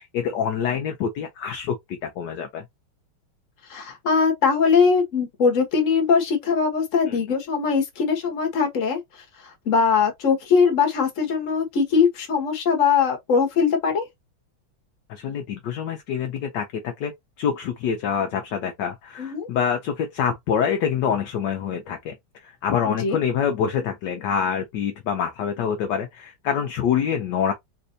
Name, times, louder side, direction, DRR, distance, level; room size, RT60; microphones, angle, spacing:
voice 1, 0.0-2.6 7.1-7.2 15.1-17.1 17.4-22.2 22.4-27.5, left 7 dB, 70° left, 1.1 m, -26 dB
voice 2, 3.7-9.0 9.4-14.1 19.2-19.5 23.0-23.2, left 5 dB, 45° left, 1.3 m, -21 dB
4.3 x 2.5 x 2.6 m
omnidirectional pair, 2.4 m